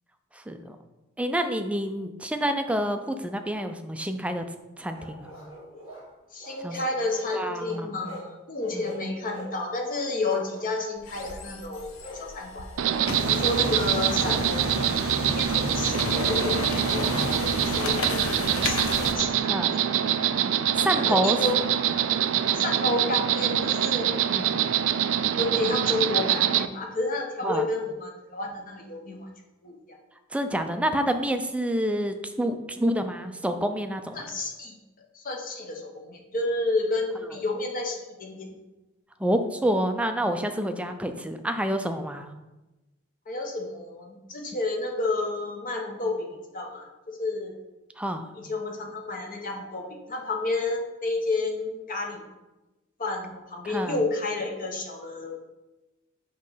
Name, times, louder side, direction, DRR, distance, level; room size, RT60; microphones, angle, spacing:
voice 1, 0.3-0.8 1.2-4.4 4.8-5.3 6.6-6.8 7.3-8.1 8.7-8.9 14.2-14.4 19.5-19.7 20.8-21.4 24.2-24.7 27.4-27.7 30.3-34.2 39.2-42.3 48.0-48.3 53.7-54.0, right 1 dB, 5° right, 7 dB, 0.5 m, -28 dB
sound 1, 4.9-6.0 6.4-7.3 7.7-8.3 8.6-9.5 9.8-10.7 11.1-11.4 12.0-12.2 12.7-13.6 14.2-14.4 15.3-17.1, equal, 70° left, 2.3 m, -42 dB
voice 2, 6.3-12.7 13.1-19.8 20.9-21.5 22.5-24.1 25.3-29.3 29.6-30.0 31.7-31.8 34.1-34.8 35.1-38.5 43.3-47.6 48.3-52.2 53.0-55.5, left 2 dB, 40° left, 1 dB, 1.1 m, -31 dB
sound 2, 11.0-19.1, left 3 dB, 90° left, 0.8 m, -32 dB
Insect, 12.8-26.7, right 10 dB, 65° right, 0.4 m, -25 dB
7.6 x 3.1 x 5.5 m, 1.0 s
head